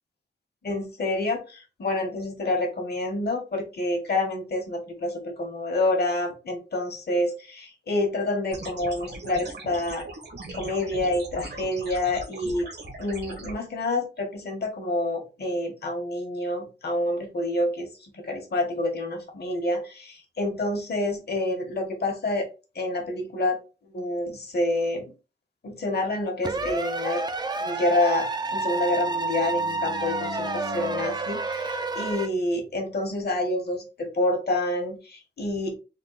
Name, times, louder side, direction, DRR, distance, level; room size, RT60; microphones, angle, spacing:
voice 1, 0.6-10.1 10.5-12.7 13.0-22.5 22.7-23.6 23.8-25.1 25.6-27.2 27.6-35.7, left 1 dB, 60° left, 3 dB, 1.3 m, -28 dB
sound 1, 8.5-13.5, right 2 dB, 65° right, 1.2 m, -40 dB
sound 2, 26.4-32.3, right 3 dB, 20° right, 0.4 m, -29 dB
Bowed string instrument, 28.4-32.5, left 4 dB, 85° left, 0.8 m, -43 dB
3.8 x 2.3 x 3.9 m, 0.31 s
wide cardioid pair, 100°, 19 cm